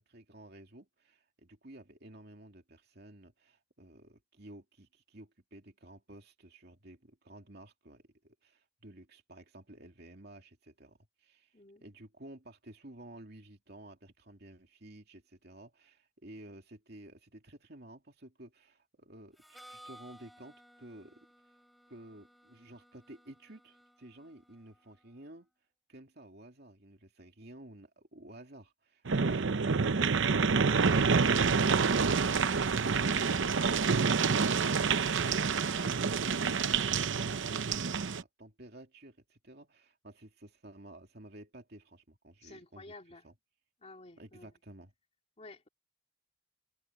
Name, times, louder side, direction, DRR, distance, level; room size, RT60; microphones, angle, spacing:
voice 1, 0.0-21.3 21.9-25.5 25.9-35.2 35.5-42.9 43.2-43.3 44.2-44.9, right 1 dB, 55° right, 2.6 m, -53 dB
voice 2, 11.5-11.8 29.2-29.4 35.1-35.5 42.4-43.3 43.8-44.5 45.4-45.7, left 2 dB, 35° left, 2.5 m, -52 dB
Harmonica, 19.4-25.1, equal, ahead, 4.0 m, -58 dB
sound 1, 29.1-38.2, right 5 dB, 70° right, 0.7 m, -28 dB
head